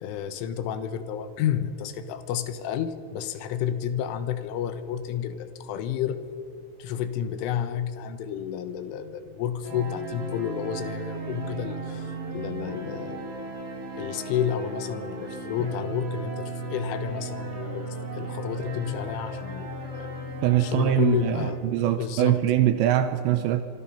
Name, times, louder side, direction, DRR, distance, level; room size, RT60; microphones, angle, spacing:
voice 1, 0.0-6.2 6.8-13.3 14.0-17.9 18.1-20.1 20.6-21.6 21.9-22.4, left 9 dB, 80° left, 11 dB, 3.6 m, -31 dB
sound 1, 9.6-21.5, right 2 dB, 30° right, 4.2 m, -36 dB
voice 2, 20.4-23.6, right 12 dB, 80° right, 10 dB, 2.7 m, -23 dB
25.5 x 25.0 x 5.7 m, 2.5 s
omnidirectional pair, 5.8 m